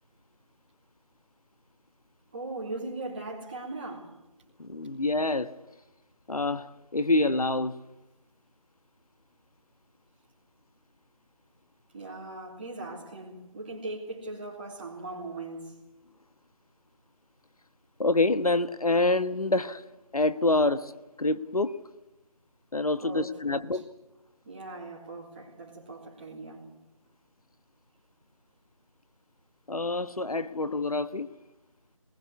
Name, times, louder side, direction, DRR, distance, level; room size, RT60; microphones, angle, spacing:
voice 1, 2.3-4.2 11.9-15.8 23.0-23.8 24.4-26.7, right 2 dB, 15° right, 3.2 m, -39 dB
voice 2, 4.6-5.6 6.3-7.8 18.0-19.9 20.1-21.8 22.7-23.9 29.7-31.3, left 2 dB, 85° left, 1.3 m, -27 dB
21.0 x 20.5 x 8.3 m
figure-of-eight pair, 175°, 18 cm